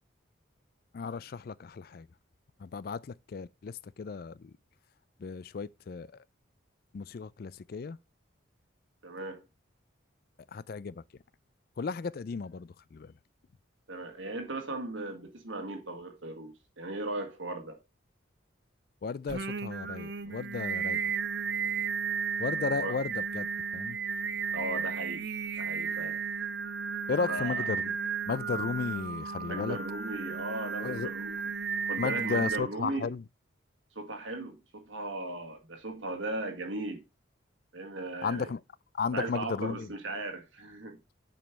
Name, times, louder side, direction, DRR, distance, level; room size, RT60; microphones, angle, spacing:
voice 1, 0.9-2.1 2.6-3.0 3.3-4.5 5.2-6.1 6.9-8.0 10.5-11.0 11.8-13.1 19.0-21.0 22.4-23.5 23.7-24.0 27.1-27.9 28.3-29.8 30.8-31.1 32.0-33.2 38.2-38.6 38.9-39.9, left 5 dB, 50° left, 0.4 m, -34 dB
voice 2, 9.0-9.4 13.9-17.8 22.5-23.0 24.5-25.3 25.6-26.2 27.3-27.7 29.5-31.4 31.8-33.1 34.0-37.0 37.7-38.5 39.1-41.0, right 2 dB, 80° right, 1.7 m, -37 dB
Singing, 19.3-32.6, right 6 dB, 55° right, 0.6 m, -34 dB
7.4 x 5.2 x 4.6 m
head